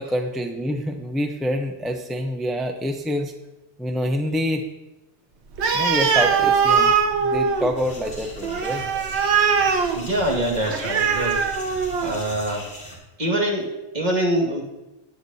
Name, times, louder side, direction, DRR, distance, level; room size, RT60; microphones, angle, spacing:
voice 1, 0.0-3.3 3.8-4.6 5.7-6.9 7.2-8.8, equal, ahead, 4 dB, 0.5 m, -26 dB
Animal, 5.5-12.3, right 6 dB, 75° right, 1.1 m, -22 dB
sound 1, 7.8-13.0, left 1 dB, 60° left, 3.0 m, -40 dB
voice 2, 9.9-12.7 13.2-14.6, right 1 dB, 40° right, -2 dB, 2.1 m, -25 dB
19.0 x 8.0 x 2.7 m, 1.0 s
omnidirectional pair, 1.2 m